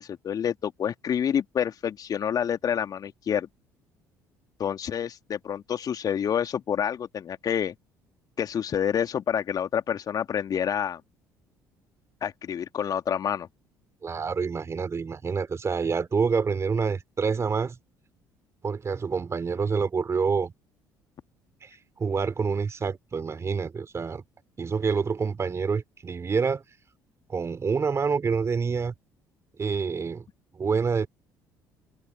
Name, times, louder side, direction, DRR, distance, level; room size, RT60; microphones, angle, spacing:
voice 1, 0.0-3.5 4.6-7.7 8.4-11.0 12.2-13.5, left 8 dB, 40° left, 2.4 m, -28 dB
voice 2, 14.0-17.8 18.6-20.5 21.6-24.2 24.6-26.6 27.3-28.9 29.6-30.2 30.6-31.1, right 5 dB, 30° right, 3.0 m, -27 dB
figure-of-eight pair, 55°, 10 cm